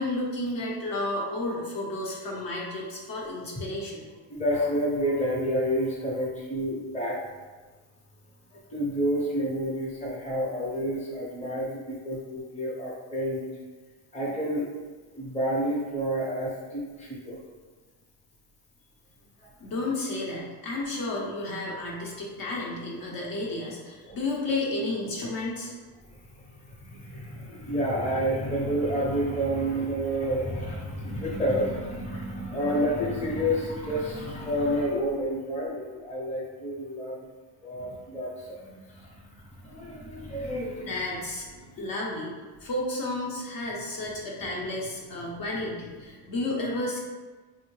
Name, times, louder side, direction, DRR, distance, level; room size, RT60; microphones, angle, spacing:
voice 1, 0.0-4.1 19.6-25.7 40.8-41.5 41.8-42.3 42.6-47.0, left 2 dB, 50° left, -4 dB, 0.8 m, -32 dB
voice 2, 4.3-7.2 8.5-13.4 14.1-14.7 15.1-17.4 24.1-24.2 26.3-37.2 37.6-39.3 39.6-41.0 41.6-41.8, equal, 15° left, -5 dB, 0.7 m, -29 dB
3.5 x 2.1 x 3.1 m, 1.3 s
cardioid pair, 115°, 45 cm